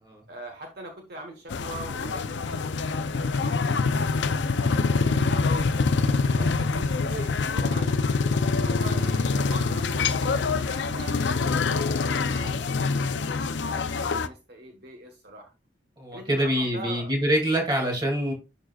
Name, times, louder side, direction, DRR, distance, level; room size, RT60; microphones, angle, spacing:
voice 1, 0.3-4.1 4.6-5.2 6.0-13.2 13.7-15.5 16.1-17.1, right 1 dB, 60° right, 1.2 m, -42 dB
sound 1, 1.5-14.3, left 4 dB, 80° left, 0.5 m, -25 dB
voice 2, 16.0-18.3, equal, 25° right, 2.4 m, -25 dB
11.0 x 3.8 x 2.4 m
head